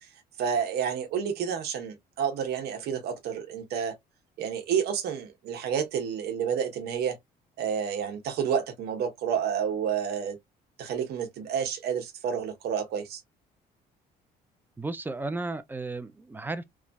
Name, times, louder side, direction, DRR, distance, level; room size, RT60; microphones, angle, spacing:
voice 1, 0.4-3.9 4.4-7.2 7.6-10.4 10.8-13.2, right 7 dB, 70° right, 0.9 m, -30 dB
voice 2, 14.8-16.6, right 2 dB, 10° right, 0.4 m, -34 dB
3.1 x 2.4 x 2.2 m
cardioid pair, 110°, 17 cm